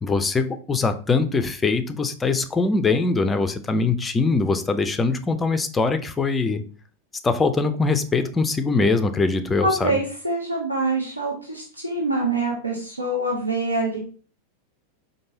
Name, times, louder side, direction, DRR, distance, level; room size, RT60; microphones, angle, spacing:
voice 1, 0.0-6.6 7.2-10.0, left 3 dB, 15° left, 9 dB, 0.4 m, -22 dB
voice 2, 9.6-14.0, right 2 dB, 85° right, -1 dB, 0.6 m, -25 dB
4.5 x 2.6 x 2.7 m, 0.40 s
figure-of-eight pair, 90°, 0 cm